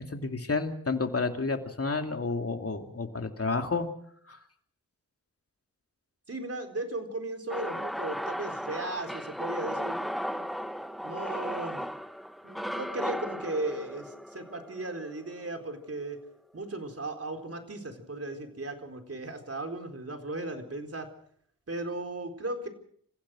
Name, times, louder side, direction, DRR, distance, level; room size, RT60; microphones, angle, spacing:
voice 1, 0.0-3.9 4.3-4.4, left 4 dB, 40° left, 5 dB, 2.7 m, -30 dB
voice 2, 6.3-10.4 11.0-11.8 12.4-16.2 16.5-21.1 21.7-22.7, right 2 dB, 45° right, 4 dB, 4.2 m, -36 dB
sound 1, 7.5-15.7, equal, ahead, 1.1 m, -36 dB
28.0 x 15.5 x 6.3 m, 0.63 s
wide cardioid pair, 70°, 34 cm